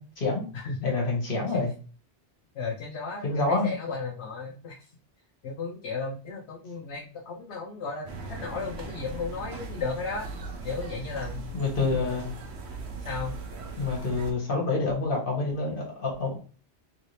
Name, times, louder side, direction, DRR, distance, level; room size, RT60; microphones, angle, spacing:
voice 1, 0.0-0.5 0.8-1.7 3.2-3.7 11.5-12.3 13.8-16.4, left 3 dB, 55° left, -2 dB, 1.4 m, -27 dB
voice 2, 0.5-0.9 1.5-1.6 2.6-4.8 5.4-10.3 10.6-11.5 11.9-12.2 13.0-13.3, left 4 dB, 80° left, -1 dB, 1.0 m, -34 dB
sound 1, 8.1-14.3, right 3 dB, 75° right, 0.9 m, -38 dB
3.1 x 2.7 x 3.1 m, 0.38 s
omnidirectional pair, 1.1 m